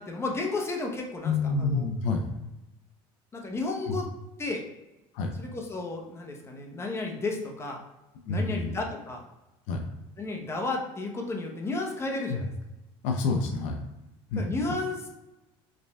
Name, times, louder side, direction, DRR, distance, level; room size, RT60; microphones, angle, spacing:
voice 1, 0.0-1.3 1.6-1.8 3.3-4.1 4.4-4.6 5.4-7.8 8.3-9.2 10.2-12.5 14.4-15.1, left 3 dB, 20° left, 1 dB, 0.8 m, -32 dB
voice 2, 1.2-2.3 3.9-4.0 5.1-5.3 8.2-8.8 9.7-9.8 12.3-12.4 13.0-13.8 14.3-14.4, left 4 dB, 70° left, 4 dB, 0.5 m, -28 dB
5.0 x 3.3 x 2.2 m, 1.0 s
supercardioid pair, 110°, 12 cm